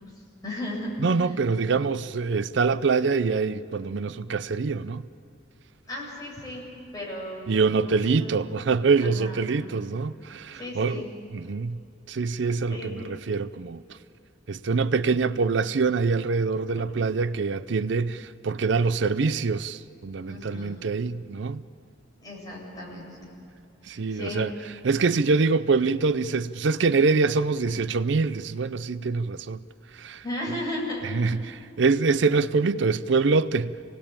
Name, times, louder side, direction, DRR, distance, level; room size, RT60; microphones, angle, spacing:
voice 1, 0.1-0.9 5.9-6.6 6.9-8.6 9.0-9.7 10.5-11.1 12.7-12.9 20.2-20.8 22.2-23.2 23.8-24.5 30.2-31.2, left 1 dB, 20° left, 7.9 m, -36 dB
voice 2, 1.0-5.0 7.5-11.0 11.3-11.8 12.1-14.0 14.5-21.6 23.8-24.5 24.8-29.6 29.9-30.2 31.0-33.8, right 4 dB, 65° right, 0.5 m, -25 dB
27.0 x 19.0 x 8.8 m
head